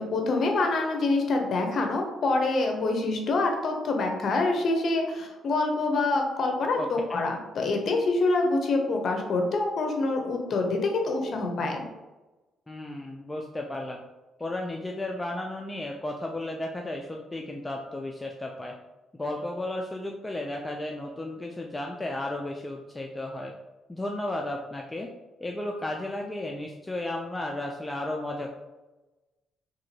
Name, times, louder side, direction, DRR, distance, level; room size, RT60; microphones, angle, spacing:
voice 1, 0.0-11.8, left 3 dB, 55° left, 3 dB, 0.6 m, -26 dB
voice 2, 6.8-7.2 12.7-14.0 14.4-18.7 19.2-23.5 23.9-25.1 25.4-28.5, left 1 dB, 15° left, 1 dB, 0.3 m, -34 dB
2.9 x 2.7 x 2.7 m, 1.1 s
cardioid pair, 90°, 0 cm